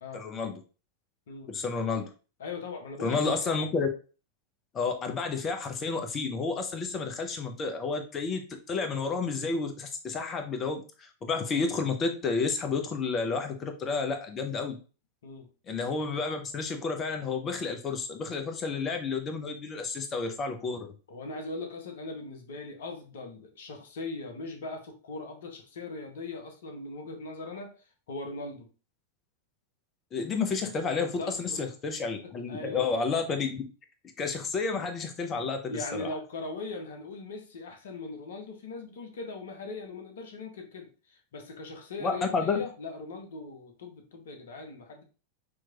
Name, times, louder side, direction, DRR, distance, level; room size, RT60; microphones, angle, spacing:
voice 1, 0.1-0.5 1.5-2.1 3.0-3.9 4.7-14.8 15.7-20.9 30.1-33.6 34.2-36.1 42.0-42.6, left 4 dB, 25° left, 6 dB, 0.9 m, -31 dB
voice 2, 2.4-3.4 15.2-15.5 21.1-27.7 28.1-28.7 31.0-31.6 32.2-32.9 35.6-45.0, left 3 dB, 60° left, 4 dB, 1.0 m, -40 dB
6.2 x 3.0 x 2.4 m, 0.35 s
figure-of-eight pair, 90°, 0 cm